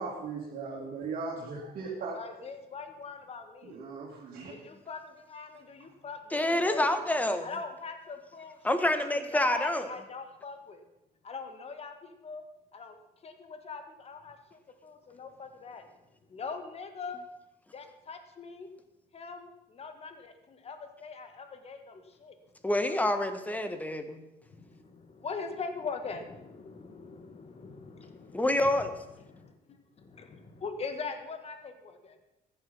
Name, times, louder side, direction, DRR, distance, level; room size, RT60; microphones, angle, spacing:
voice 1, 0.0-2.2 3.6-4.5, right 4 dB, 60° right, -4 dB, 3.1 m, -38 dB
voice 2, 2.1-3.8 4.5-6.9 7.4-10.8 11.2-12.4 12.7-12.9 13.2-15.9 16.3-17.2 17.7-18.7 19.1-22.4 24.5-28.9 29.2-29.5 30.0-32.2, left 4 dB, 35° left, 7 dB, 1.9 m, -42 dB
voice 3, 6.3-7.5 8.6-9.9 22.6-24.2 28.3-28.9, left 1 dB, 10° left, 9 dB, 1.6 m, -27 dB
15.0 x 10.5 x 5.7 m, 0.92 s
cardioid pair, 110°, 17 cm